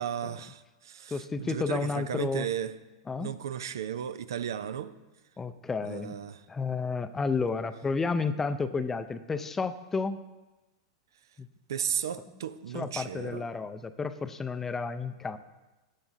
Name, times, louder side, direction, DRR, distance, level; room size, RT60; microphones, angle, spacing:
voice 1, 0.0-2.8 3.2-5.0 5.8-6.5 11.7-13.5, right 9 dB, 70° right, 0.5 m, -35 dB
voice 2, 1.1-2.5 3.1-3.3 5.4-6.2 6.5-10.2 11.4-11.5 12.7-15.4, left 4 dB, 15° left, 0.5 m, -31 dB
14.0 x 8.8 x 2.7 m
figure-of-eight pair, 95°, 2 cm